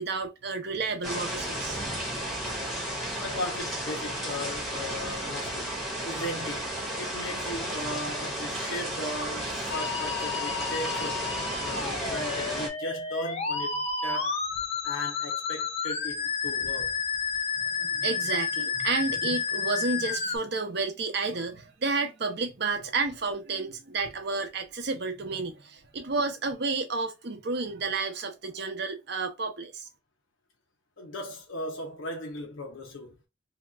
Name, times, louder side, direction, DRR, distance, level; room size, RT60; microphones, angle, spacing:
voice 1, 0.0-1.8 17.6-29.8, right 4 dB, 55° right, 0.6 m, -31 dB
sound 1, 1.0-12.7, right 1 dB, ahead, 0.7 m, -33 dB
voice 2, 3.2-5.8 6.0-6.7 7.0-11.3 11.6-14.4 14.8-17.0 31.0-33.3, left 1 dB, 75° left, 0.7 m, -37 dB
Musical instrument, 9.7-20.4, left 5 dB, 30° left, 0.4 m, -31 dB
2.8 x 2.3 x 3.4 m
head